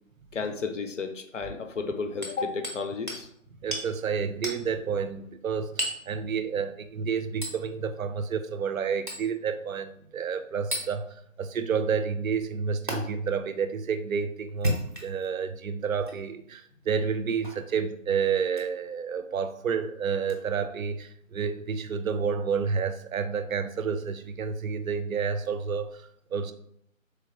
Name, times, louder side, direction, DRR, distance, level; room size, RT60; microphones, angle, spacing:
voice 1, 0.3-3.3, left 4 dB, 65° left, 7 dB, 0.5 m, -32 dB
Hammer, 2.2-2.8 3.1-3.2 3.7-3.9 4.4-4.6 5.8-6.1 7.4-7.6 9.1-9.3 10.7-10.9 12.9-13.0 14.5-15.3 16.0-16.2 17.4-17.6 18.5-18.7 20.3-20.4, equal, 40° right, 0.5 m, -32 dB
voice 2, 3.6-26.5, right 6 dB, 90° right, 10 dB, 0.5 m, -30 dB
3.3 x 2.1 x 3.5 m, 0.70 s
figure-of-eight pair, 165°, 40 cm